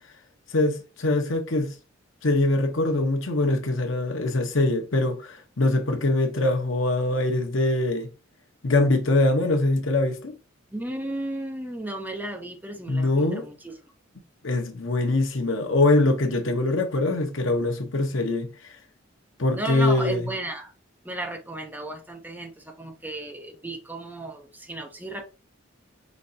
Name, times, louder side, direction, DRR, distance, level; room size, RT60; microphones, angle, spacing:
voice 1, 0.5-1.7 2.2-8.1 8.6-10.3 12.9-13.5 14.4-18.5 19.4-20.3, left 2 dB, 70° left, 0.9 m, -23 dB
voice 2, 10.7-13.7 19.5-20.7 21.0-25.3, right 1 dB, 10° right, 0.6 m, -34 dB
5.2 x 3.2 x 2.7 m
head